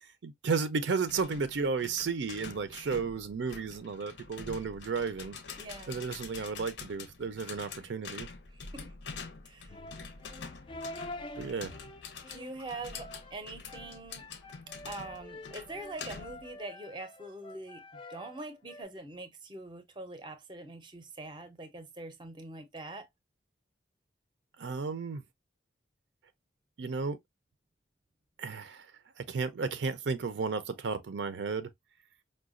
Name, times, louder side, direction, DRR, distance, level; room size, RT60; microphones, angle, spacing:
voice 1, 0.2-5.4 5.9-8.3 11.4-11.7 24.6-25.2 26.8-27.2 28.4-28.9 29.2-31.7, right 5 dB, 75° right, 0.4 m, -33 dB
sound 1, 1.1-16.5, left 5 dB, 75° left, 0.6 m, -46 dB
voice 2, 5.6-6.0 8.5-8.9 9.4-9.8 12.3-14.3 14.9-17.8 18.1-23.1, right 2 dB, 25° right, 0.5 m, -43 dB
sound 2, 9.7-18.8, left 2 dB, 25° left, 0.3 m, -47 dB
4.8 x 2.2 x 2.4 m
head